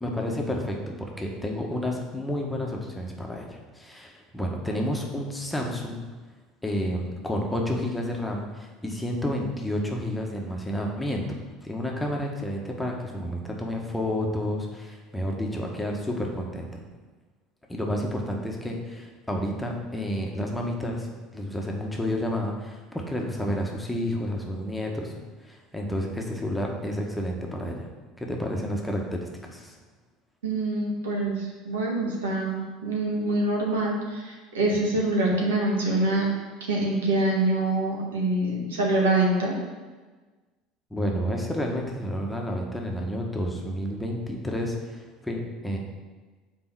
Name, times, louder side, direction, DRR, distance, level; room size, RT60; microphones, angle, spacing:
voice 1, 0.0-6.0 6.6-16.7 17.7-25.1 25.4-27.9 28.2-29.8 40.9-45.8, equal, 5° left, 0 dB, 1.4 m, -30 dB
voice 2, 30.4-36.2 36.7-39.5, right 2 dB, 75° right, -2 dB, 1.7 m, -25 dB
6.0 x 4.4 x 6.0 m, 1.3 s
figure-of-eight pair, 65°, 0 cm